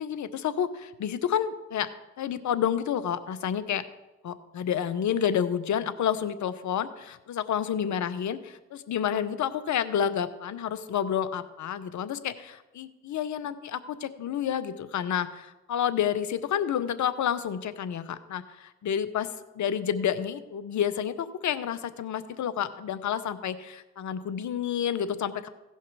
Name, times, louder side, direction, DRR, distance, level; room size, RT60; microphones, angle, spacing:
voice 1, 0.0-1.9 2.2-3.8 4.2-19.3 19.5-25.5, left 9 dB, 60° left, 13 dB, 0.9 m, -29 dB
16.0 x 5.6 x 4.8 m, 1.0 s
supercardioid pair, 55°, 32 cm